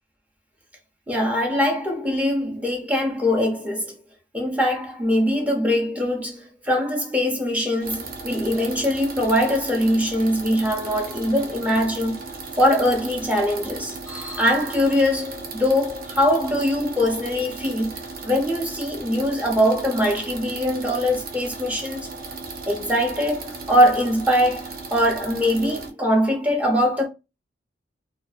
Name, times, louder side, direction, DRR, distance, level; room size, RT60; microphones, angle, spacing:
voice 1, 1.1-4.0 4.3-12.2 12.6-22.1 22.7-27.1, equal, 10° right, 0.6 m, -22 dB
sound 1, 7.8-25.9, right 4 dB, 55° right, 0.6 m, -36 dB
2.5 x 2.3 x 2.4 m
head